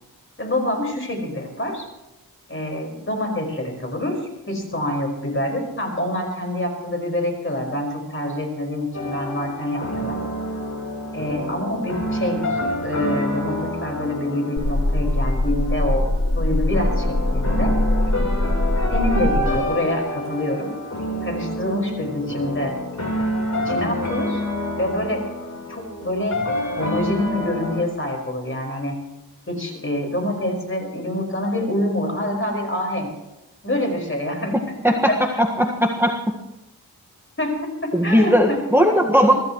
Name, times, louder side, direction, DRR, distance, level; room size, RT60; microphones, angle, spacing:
voice 1, 0.4-1.9 2.5-10.2 11.1-17.8 18.9-20.8 21.2-22.8 23.6-24.4 24.7-25.2 25.7-26.4 26.8-29.0 29.5-33.1 33.6-35.4 37.4-38.6, left 1 dB, 35° left, 2 dB, 5.3 m, -26 dB
sound 1, 8.9-27.8, left 1 dB, 50° left, 3.9 m, -28 dB
sound 2, 14.6-19.6, left 1 dB, 85° left, 2.9 m, -22 dB
voice 2, 35.4-36.4 37.9-39.4, equal, 5° right, 1 dB, 1.6 m, -18 dB
24.0 x 14.5 x 3.1 m, 0.97 s
wide cardioid pair, 55°, 36 cm